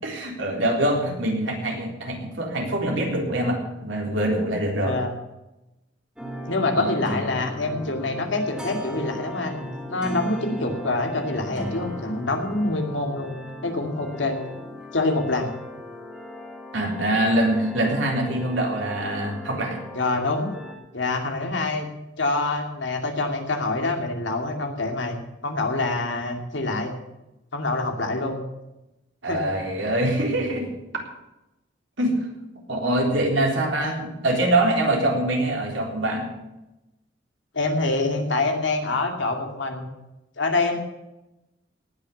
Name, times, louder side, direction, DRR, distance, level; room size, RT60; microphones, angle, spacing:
voice 1, 0.0-5.0 6.8-6.9 16.7-19.8 29.2-30.7 32.0-32.1 32.7-36.3, right 1 dB, 85° right, 0 dB, 3.8 m, -24 dB
sound 1, 6.2-20.7, left 1 dB, 5° right, 2.9 m, -37 dB
voice 2, 6.5-13.4 13.6-14.4 14.9-15.5 19.9-20.5 20.9-21.9 22.2-26.9 27.5-28.4 29.3-29.4 37.5-39.9 40.4-40.8, left 2 dB, 75° left, 3 dB, 2.4 m, -26 dB
18.5 x 6.5 x 8.4 m, 0.96 s
head